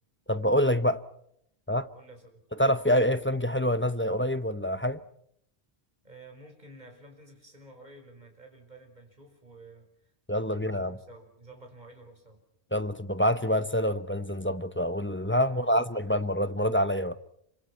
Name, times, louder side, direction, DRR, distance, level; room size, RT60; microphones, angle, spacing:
voice 1, 0.3-1.0 1.7-1.9 2.6-5.0 10.3-11.0 12.7-17.2, equal, 10° left, 0.8 m, -26 dB
voice 2, 1.9-2.4 6.0-12.4 15.4-16.1, right 2 dB, 45° right, 5.3 m, -51 dB
27.5 x 25.0 x 5.8 m
omnidirectional pair, 1.1 m